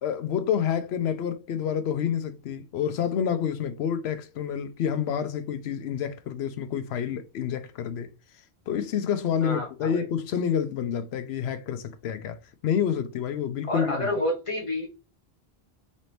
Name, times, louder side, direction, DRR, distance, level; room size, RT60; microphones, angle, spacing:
voice 1, 0.0-8.1 8.7-14.1, left 8 dB, 75° left, 0.8 m, -28 dB
voice 2, 9.4-10.0 13.7-14.9, left 1 dB, 30° left, 1.4 m, -29 dB
4.2 x 2.7 x 3.2 m
omnidirectional pair, 1.1 m